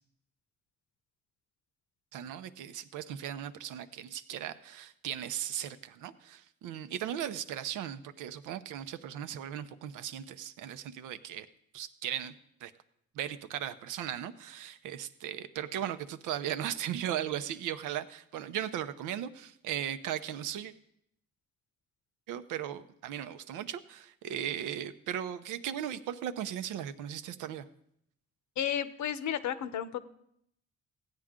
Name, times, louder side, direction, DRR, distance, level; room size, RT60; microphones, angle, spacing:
voice 1, 2.1-11.5 11.7-12.3 12.6-12.7 13.1-20.7 22.3-27.7, right 10 dB, 90° right, 11 dB, 0.7 m, -37 dB
voice 2, 28.6-30.0, left 9 dB, 70° left, 13 dB, 0.8 m, -32 dB
16.0 x 9.0 x 3.7 m, 0.74 s
cardioid pair, 90°, 30 cm